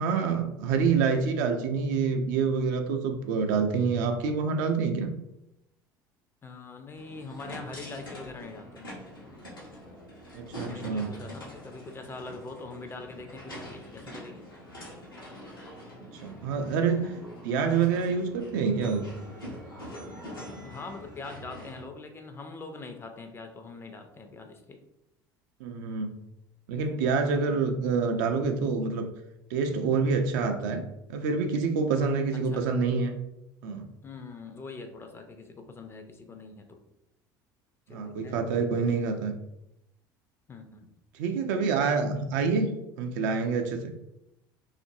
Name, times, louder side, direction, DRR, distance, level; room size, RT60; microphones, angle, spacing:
voice 1, 0.0-5.1 10.3-11.1 16.0-17.1 17.4-19.1 25.6-26.2 26.7-29.1 29.5-30.8 31.1-33.1 33.6-33.9 37.9-39.3 41.1-43.9, right 5 dB, 60° right, 5 dB, 0.4 m, -27 dB
voice 2, 6.4-8.9 10.7-14.4 16.9-17.1 20.6-24.8 32.3-32.6 34.0-36.8 37.9-39.1 40.5-40.9, left 3 dB, 20° left, 6 dB, 0.4 m, -43 dB
sound 1, 6.9-21.8, equal, 90° left, 0.7 m, -44 dB
2.5 x 2.4 x 2.6 m, 0.85 s
figure-of-eight pair, 65°, 11 cm